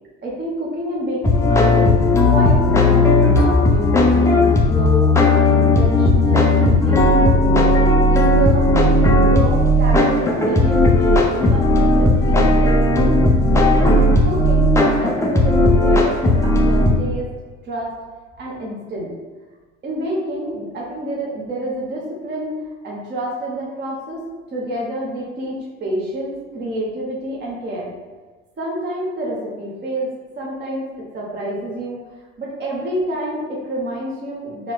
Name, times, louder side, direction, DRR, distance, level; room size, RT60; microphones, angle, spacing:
voice 1, 0.2-1.8 2.2-5.2 5.5-7.7 8.0-8.8 9.1-13.3 13.8-17.3 17.7-17.9 18.4-19.1 19.8-24.2 24.5-27.9 28.6-30.1 30.4-30.9 31.1-32.0 32.4-34.7, right 1 dB, 30° right, -4 dB, 0.8 m, -28 dB
sound 1, 1.2-16.9, left 1 dB, 10° left, 0.4 m, -15 dB
4.3 x 2.0 x 2.4 m, 1.3 s
hypercardioid pair, 65°, 37 cm